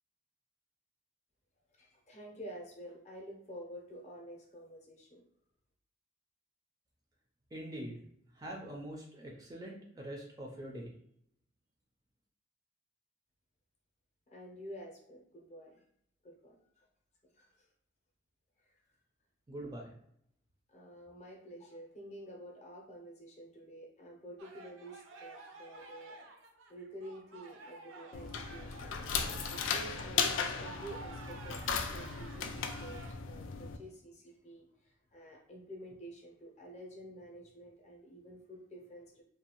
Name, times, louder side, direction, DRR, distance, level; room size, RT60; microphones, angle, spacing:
voice 1, 1.8-5.2 14.3-15.8 16.2-16.8 17.3-17.7 20.7-26.2 26.7-28.9 29.5-33.0 33.3-39.2, right 1 dB, 35° left, -1 dB, 0.6 m, -49 dB
voice 2, 7.5-8.0 8.3-10.9 19.5-19.9, right 1 dB, 20° right, -1 dB, 0.3 m, -44 dB
sound 1, 24.4-33.1, right 3 dB, 85° right, 0.5 m, -52 dB
sound 2, 28.1-33.8, left 6 dB, 85° left, 0.3 m, -36 dB
2.6 x 2.3 x 2.8 m, 0.72 s
head